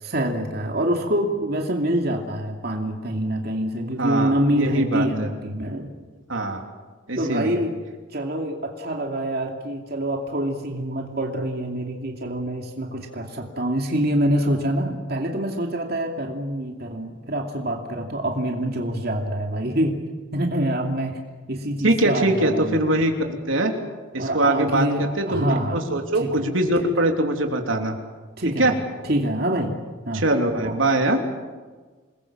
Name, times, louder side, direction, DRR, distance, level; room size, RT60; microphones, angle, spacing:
voice 1, 0.0-5.9 7.2-7.7 8.1-20.0 20.3-21.2 21.5-22.9 24.2-25.8 26.2-26.3 28.4-28.8 29.1-29.8 30.1-30.2 30.6-30.8, right 1 dB, 50° right, 2 dB, 2.6 m, -25 dB
voice 2, 4.0-5.3 6.3-6.6 7.1-7.6 21.8-23.1 23.5-23.7 24.1-25.4 25.7-27.9 28.6-28.7 30.1-31.2, right 1 dB, 80° right, 3 dB, 3.2 m, -22 dB
28.0 x 21.0 x 7.4 m, 1.4 s
head